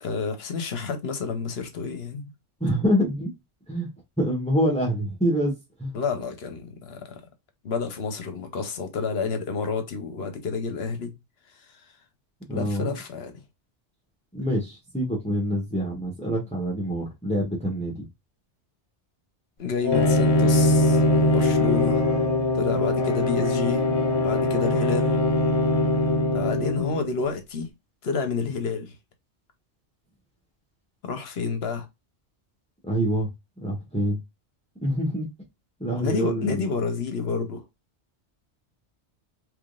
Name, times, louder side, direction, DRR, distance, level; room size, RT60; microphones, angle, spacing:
voice 1, 0.0-2.3 5.9-7.2 7.6-11.1 12.5-13.3 19.6-22.1 22.5-23.9 24.2-25.2 26.3-27.7 28.0-28.9 31.0-31.9 36.0-37.6, left 5 dB, 65° left, 1.0 m, -29 dB
voice 2, 2.6-3.3 3.7-3.9 4.2-5.5 5.8-5.9 12.5-12.9 14.3-18.0 32.9-33.3 33.6-34.2 34.8-35.3 35.8-36.6, equal, 5° left, 1.1 m, -26 dB
Wind instrument woodwind instrument, 19.8-27.1, left 3 dB, 30° right, 1.5 m, -25 dB
Bowed string instrument, 19.9-27.0, left 1 dB, 45° left, 0.5 m, -24 dB
3.6 x 3.1 x 2.4 m
omnidirectional pair, 1.2 m